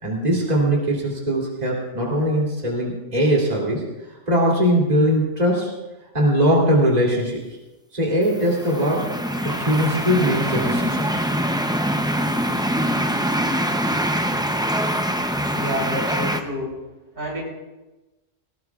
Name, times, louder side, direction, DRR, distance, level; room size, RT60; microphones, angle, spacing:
voice 1, 0.0-3.8 4.3-5.7 6.1-7.4 7.9-9.1 9.4-11.1, equal, 35° right, -4 dB, 3.0 m, -20 dB
sound 1, 8.3-16.4, equal, 5° right, 0.4 m, -24 dB
voice 2, 15.5-16.7 17.1-17.4, equal, 85° right, -4 dB, 4.6 m, -28 dB
19.0 x 18.5 x 2.4 m, 1.1 s
omnidirectional pair, 1.3 m